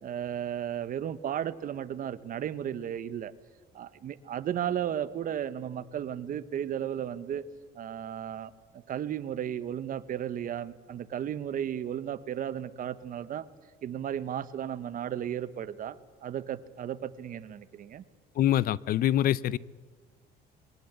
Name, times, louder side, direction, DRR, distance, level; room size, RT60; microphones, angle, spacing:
voice 1, 0.0-3.3 3.7-7.4 7.7-8.5 8.9-13.5 13.8-16.0 16.2-18.0, right 10 dB, 55° right, 14 dB, 1.2 m, -34 dB
voice 2, 18.4-19.6, left 12 dB, 60° left, 20 dB, 0.6 m, -25 dB
22.0 x 18.0 x 8.2 m, 1.4 s
cardioid pair, 110°, 17 cm